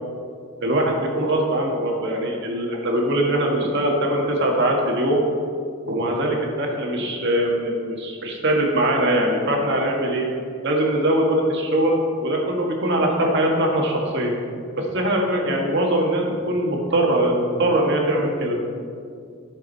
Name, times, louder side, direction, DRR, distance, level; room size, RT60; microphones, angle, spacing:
voice 1, 0.6-5.2 5.9-10.3 10.6-14.3 14.8-18.6, right 1 dB, 55° right, 0 dB, 1.7 m, -22 dB
14.5 x 6.5 x 4.1 m, 2.3 s
head